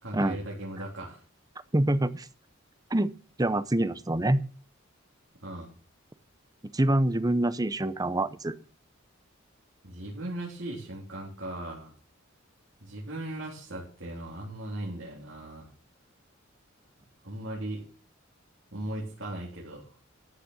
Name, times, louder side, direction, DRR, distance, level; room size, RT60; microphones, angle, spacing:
voice 1, 0.0-1.2 5.4-5.7 9.8-11.9 12.8-15.7 17.2-17.8 18.7-20.0, right 1 dB, 70° right, 3.7 m, -38 dB
voice 2, 1.7-2.3 2.9-3.1 3.4-4.4 6.7-8.5, right 1 dB, 20° right, 0.7 m, -25 dB
13.5 x 6.7 x 7.3 m
head